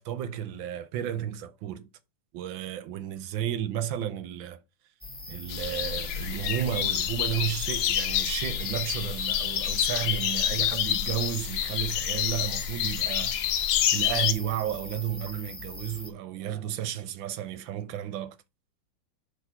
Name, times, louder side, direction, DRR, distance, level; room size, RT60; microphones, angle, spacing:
voice 1, 0.0-1.9 2.3-4.6 5.3-13.4 13.9-18.4, right 10 dB, 75° right, 1.3 m, -32 dB
sound 1, 5.0-16.1, left 1 dB, 10° left, 0.5 m, -42 dB
sound 2, 5.5-14.3, left 10 dB, 75° left, 1.5 m, -28 dB
5.1 x 3.6 x 5.6 m
omnidirectional pair, 2.3 m